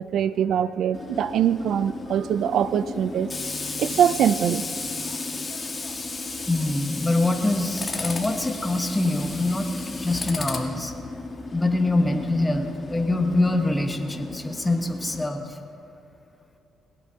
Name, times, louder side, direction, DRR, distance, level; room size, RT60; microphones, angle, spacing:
voice 1, 0.0-3.3 3.8-4.7, right 9 dB, 70° right, 15 dB, 0.4 m, -23 dB
Tools, 0.9-15.3, left 3 dB, 30° left, 1.8 m, -34 dB
voice 2, 6.5-10.9 11.5-15.6, left 2 dB, 15° left, 4 dB, 1.3 m, -24 dB
20.5 x 17.5 x 2.9 m, 2.8 s
cardioid pair, 90°, 0 cm